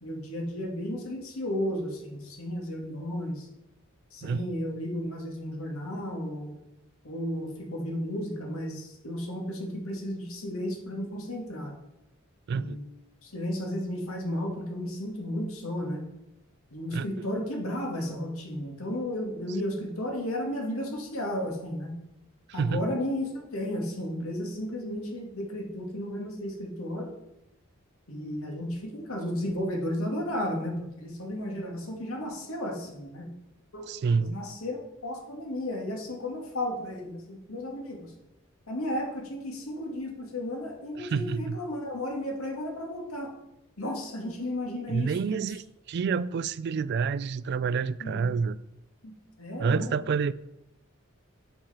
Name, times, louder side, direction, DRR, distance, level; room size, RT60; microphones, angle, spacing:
voice 1, 0.0-3.5 4.1-6.5 7.0-11.7 12.5-12.8 13.2-16.0 16.7-21.9 22.5-27.1 28.1-33.3 33.7-33.9 34.2-38.1 38.7-43.3 43.8-45.5 48.0-48.3 49.0-49.9, left 1 dB, 85° left, 2.2 m, -33 dB
voice 2, 12.5-12.8 16.9-17.3 22.5-22.8 33.9-34.4 41.0-41.6 44.9-48.6 49.6-50.3, right 5 dB, 50° right, 0.3 m, -28 dB
8.9 x 7.6 x 4.3 m
head